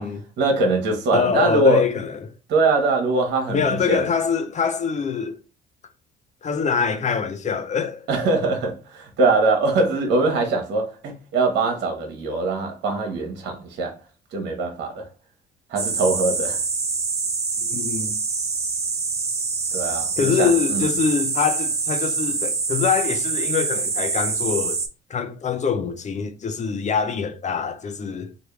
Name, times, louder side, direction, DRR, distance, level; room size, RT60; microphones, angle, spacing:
voice 1, 0.4-1.9 2.5-4.0 8.1-13.9 14.3-15.1 15.7-16.6 19.7-20.9, right 3 dB, 65° right, 1.0 m, -22 dB
voice 2, 1.1-2.2 3.5-5.4 6.4-8.1 17.6-18.1 20.2-24.8 25.1-28.3, left 6 dB, 35° left, 0.7 m, -24 dB
sound 1, 15.8-24.9, right 4 dB, 30° right, 0.8 m, -25 dB
3.3 x 2.5 x 3.2 m
hypercardioid pair, 60°, 20 cm